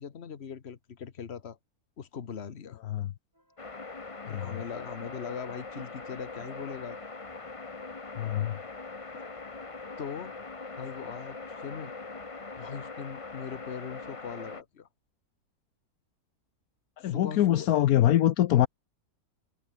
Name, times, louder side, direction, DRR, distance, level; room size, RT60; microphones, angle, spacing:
voice 1, 0.0-1.6 2.0-2.8 4.2-7.0 10.0-10.3 10.8-11.9 12.6-14.9 17.0-17.7, left 7 dB, 45° left, 1.5 m, -40 dB
sound 1, 3.3-11.8, equal, 10° right, 7.5 m, -64 dB
sound 2, 3.6-14.6, left 3 dB, 25° left, 1.2 m, -42 dB
voice 2, 4.2-4.6 8.2-8.5 17.0-18.7, left 12 dB, 75° left, 1.2 m, -24 dB
omnidirectional pair, 1.6 m